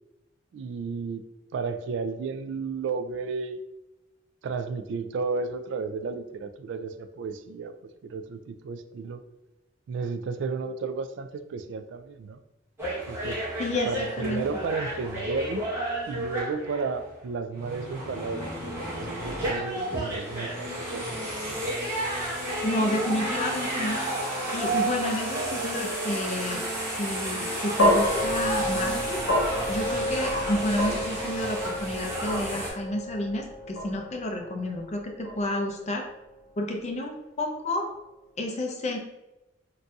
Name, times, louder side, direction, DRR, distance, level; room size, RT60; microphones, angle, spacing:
voice 1, 0.5-1.2 1.5-3.6 4.4-7.7 8.0-9.2 9.9-12.4 13.1-13.4 13.8-15.7 16.1-18.5 18.8-21.0, right 4 dB, 70° right, 10 dB, 0.3 m, -33 dB
sound 1, 12.8-17.1 17.5-32.7, right 1 dB, 15° right, 1.0 m, -32 dB
voice 2, 13.6-14.5 22.6-24.0 24.5-26.6 26.9-29.2 29.7-36.0 36.6-37.9 38.4-39.0, left 1 dB, 35° left, 2 dB, 0.5 m, -30 dB
sound 2, 27.8-36.1, equal, 75° left, 1.0 m, -29 dB
3.9 x 2.6 x 2.3 m, 0.97 s
head